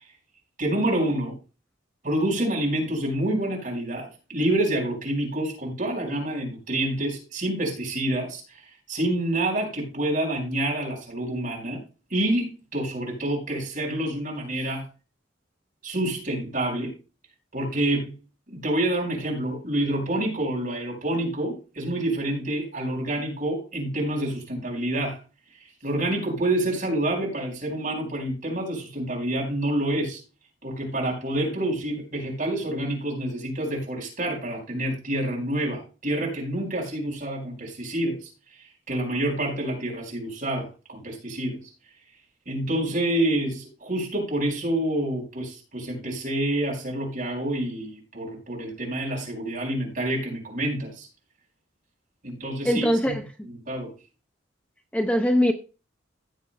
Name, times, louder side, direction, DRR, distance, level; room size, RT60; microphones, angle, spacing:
voice 1, 0.6-1.4 2.0-11.8 12.1-14.8 15.8-16.9 17.5-18.1 18.5-25.2 25.6-30.2 30.6-41.6 42.4-51.1 52.2-53.1 53.4-53.9, right 1 dB, 45° right, 4.7 m, -28 dB
voice 2, 52.6-53.2 54.9-55.5, equal, 5° left, 0.6 m, -21 dB
16.0 x 7.9 x 2.2 m
head